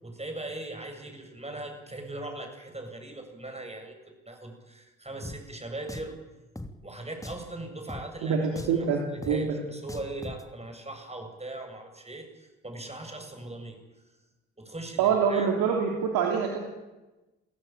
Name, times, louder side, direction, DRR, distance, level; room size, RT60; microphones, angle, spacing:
voice 1, 0.0-6.2 6.8-13.8 14.6-15.5, right 2 dB, 20° right, 5 dB, 7.7 m, -40 dB
Drum, 5.2-5.4 5.9-6.1 6.6-6.7 7.2-7.5 7.9-8.0 8.6-8.8 9.2-9.4 9.9-10.4, left 1 dB, 10° left, 3.0 m, -39 dB
voice 2, 8.2-9.0 9.3-9.5 15.0-16.7, right 6 dB, 80° right, 1 dB, 3.0 m, -25 dB
28.5 x 16.5 x 9.1 m, 1.1 s
hypercardioid pair, 50°, 35 cm